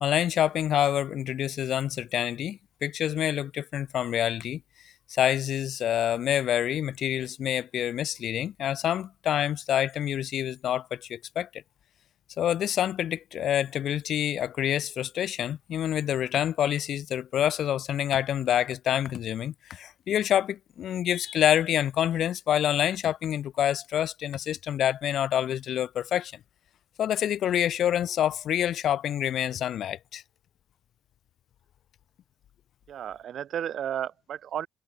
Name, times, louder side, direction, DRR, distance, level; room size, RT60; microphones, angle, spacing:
voice 1, 0.0-4.6 5.1-11.6 12.4-26.3 27.0-30.2, left 10 dB, 70° left, 0.6 m, -27 dB
voice 2, 32.9-34.7, right 10 dB, 65° right, 1.1 m, -33 dB
cardioid pair, 90°, 0 cm